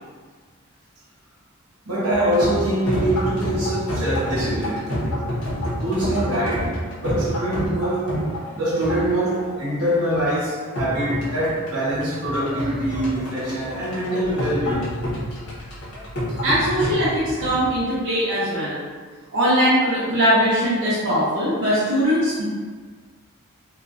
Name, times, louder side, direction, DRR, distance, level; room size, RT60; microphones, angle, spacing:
voice 1, 1.9-4.9 5.8-8.2 8.5-14.9, right 1 dB, 85° right, -7 dB, 1.0 m, -24 dB
sound 1, 2.1-17.8, equal, 85° left, 0.8 m, -28 dB
voice 2, 16.4-18.8 19.3-22.4, equal, 60° right, -10 dB, 0.6 m, -20 dB
2.5 x 2.3 x 2.3 m, 1.5 s
head